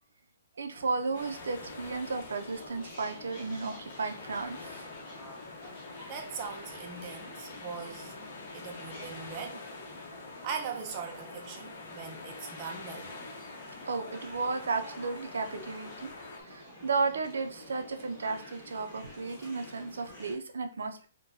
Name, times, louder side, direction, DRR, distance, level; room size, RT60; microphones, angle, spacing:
voice 1, 0.6-4.9 13.9-21.1, right 4 dB, 85° right, 0.5 m, -34 dB
sound 1, 0.7-20.3, left 1 dB, 20° left, 1.4 m, -49 dB
sound 2, 1.1-16.4, left 3 dB, 50° left, 0.7 m, -46 dB
voice 2, 6.1-8.2 8.5-9.7 10.0-10.1 10.4-13.2, right 6 dB, 25° right, 0.5 m, -40 dB
3.8 x 2.2 x 2.7 m
hypercardioid pair, 160°, 0 cm